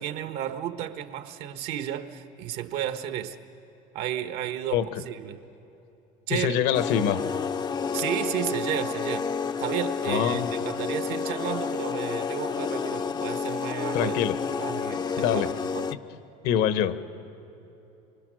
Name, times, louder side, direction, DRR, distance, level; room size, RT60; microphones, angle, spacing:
voice 1, 0.0-3.4 3.9-5.4 6.3-6.6 7.9-9.3 9.6-14.2 14.5-15.9, right 11 dB, 65° right, 1.2 m, -33 dB
voice 2, 6.3-7.4 10.0-10.5 13.9-14.4 15.2-15.5 16.4-17.0, left 9 dB, 70° left, 1.2 m, -25 dB
sound 1, 6.7-15.9, left 6 dB, 25° left, 0.6 m, -30 dB
25.0 x 24.0 x 6.4 m
supercardioid pair, 115°, 18 cm